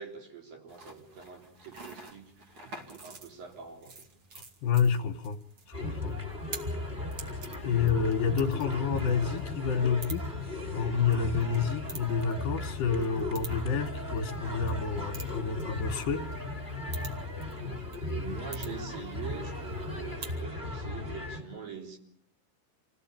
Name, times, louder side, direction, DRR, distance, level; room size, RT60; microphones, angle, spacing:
voice 1, 0.0-3.9 17.6-22.0, right 6 dB, 75° right, 5.3 m, -43 dB
sound 1, 0.7-20.4, right 3 dB, 40° right, 2.9 m, -49 dB
voice 2, 4.6-5.4 5.7-6.2 7.6-10.3 10.7-16.3, left 6 dB, 75° left, 2.8 m, -29 dB
sound 2, 5.7-21.4, left 2 dB, 15° right, 3.2 m, -36 dB
27.5 x 17.0 x 8.9 m
omnidirectional pair, 4.2 m